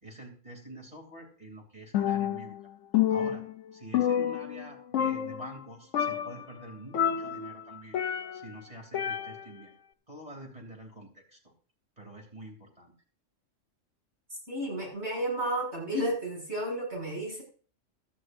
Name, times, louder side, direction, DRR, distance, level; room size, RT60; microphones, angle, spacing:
voice 1, 0.0-2.6 3.1-3.4 3.7-8.0 8.3-9.7 10.1-11.4 12.0-12.9, right 1 dB, 30° right, 1 dB, 3.2 m, -46 dB
Percussion, 1.9-2.6 2.9-4.7 4.9-5.6 5.9-6.5 6.9-8.5 8.9-9.6, left 9 dB, 75° left, 1.0 m, -29 dB
voice 2, 14.3-17.4, right 1 dB, 60° right, -2 dB, 7.3 m, -32 dB
16.5 x 12.5 x 2.6 m, 0.41 s
omnidirectional pair, 1.3 m